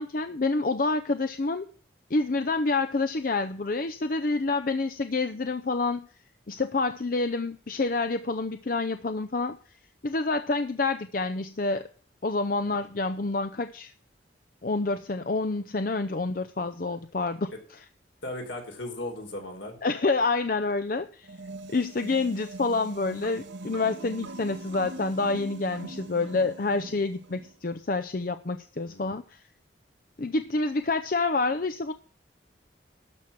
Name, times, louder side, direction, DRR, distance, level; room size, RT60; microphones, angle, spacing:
voice 1, 0.0-1.7 2.1-6.1 6.5-9.6 10.0-11.9 12.2-13.9 14.6-17.8 19.8-21.3 21.7-29.4 30.2-31.9, left 3 dB, 45° left, 9 dB, 0.6 m, -28 dB
voice 2, 18.2-19.8 28.9-29.2, left 1 dB, 75° left, 2 dB, 4.1 m, -37 dB
sound 1, 21.2-27.5, right 2 dB, 75° right, 1.4 m, -42 dB
12.5 x 6.2 x 7.2 m, 0.41 s
head